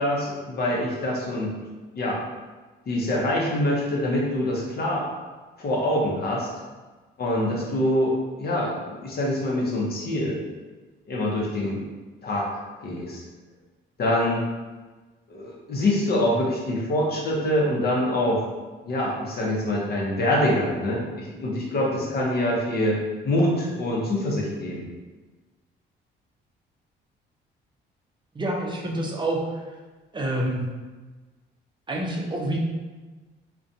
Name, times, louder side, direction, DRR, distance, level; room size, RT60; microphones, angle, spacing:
voice 1, 0.0-1.5 1.9-2.2 2.9-5.0 5.6-6.5 7.2-10.4 11.1-11.9 12.2-13.2 14.0-14.4 15.3-18.4 18.8-24.8, left 1 dB, 50° left, -3 dB, 0.7 m, -25 dB
voice 2, 28.3-29.4 30.1-30.6 31.9-32.6, right 1 dB, 25° right, -2 dB, 0.5 m, -27 dB
2.4 x 2.2 x 2.6 m, 1.3 s
cardioid pair, 90°, 20 cm